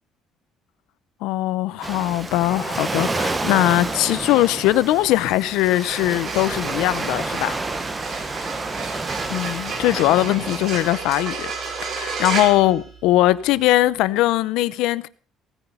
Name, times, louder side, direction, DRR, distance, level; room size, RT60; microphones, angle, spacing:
voice 1, 1.2-7.6 9.3-11.5 11.8-15.1, left 16 dB, 85° left, 0.6 m, -20 dB
Waves surf, 1.8-10.9, right 3 dB, 15° right, 0.9 m, -29 dB
sound 1, 6.0-13.5, right 5 dB, 40° right, 2.8 m, -32 dB
17.0 x 9.9 x 5.5 m
cardioid pair, 175°, 0 cm